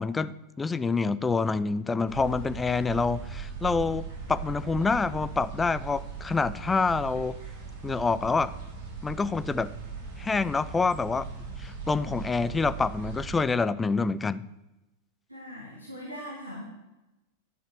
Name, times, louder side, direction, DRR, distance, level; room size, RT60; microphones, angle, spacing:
voice 1, 0.0-7.4 7.8-8.5 9.0-9.7 10.2-11.3 11.6-14.4, left 4 dB, 15° left, 16 dB, 0.4 m, -27 dB
sound 1, 2.1-13.4, right 5 dB, 50° right, 2.9 m, -39 dB
voice 2, 15.3-16.6, equal, 85° right, -4 dB, 1.8 m, -40 dB
9.9 x 5.5 x 7.4 m, 1.0 s
figure-of-eight pair, 90°, 0 cm